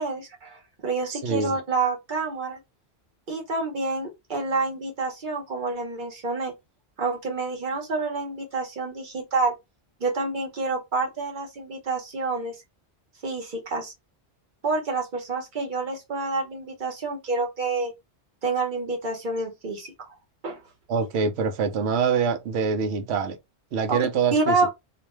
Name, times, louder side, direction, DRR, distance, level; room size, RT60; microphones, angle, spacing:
voice 1, 0.0-2.6 3.3-6.5 7.0-9.5 10.0-12.6 13.2-13.9 14.6-17.9 18.4-19.9 20.4-20.6 23.9-24.0 24.3-24.7, right 3 dB, 50° right, 1.0 m, -28 dB
voice 2, 1.2-1.6 20.9-23.4 23.7-24.5, right 6 dB, 75° right, 0.9 m, -25 dB
2.5 x 2.1 x 3.0 m
omnidirectional pair, 1.1 m